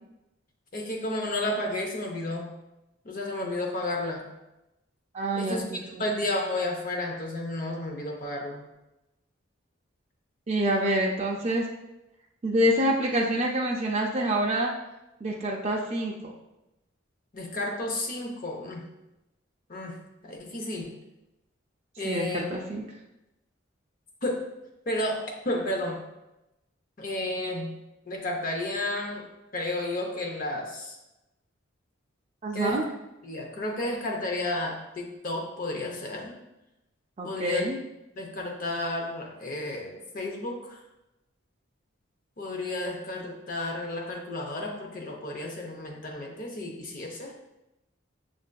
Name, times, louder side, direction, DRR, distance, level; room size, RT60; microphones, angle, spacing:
voice 1, 0.7-2.5 3.0-4.2 5.3-8.6 17.3-18.9 19.7-20.9 22.0-22.5 24.2-24.4 24.9-26.0 27.0-27.8 28.1-29.3 29.5-31.0 32.5-32.8 33.2-36.4 37.2-37.6 38.2-40.8 42.4-47.3, left 1 dB, 40° left, 1 dB, 0.6 m, -32 dB
voice 2, 5.1-6.1 10.5-11.7 12.4-14.7 15.2-16.3 22.0-22.8 32.4-32.8 37.2-37.8, right 1 dB, 30° right, -2 dB, 0.4 m, -27 dB
6.1 x 2.5 x 2.2 m, 0.94 s
head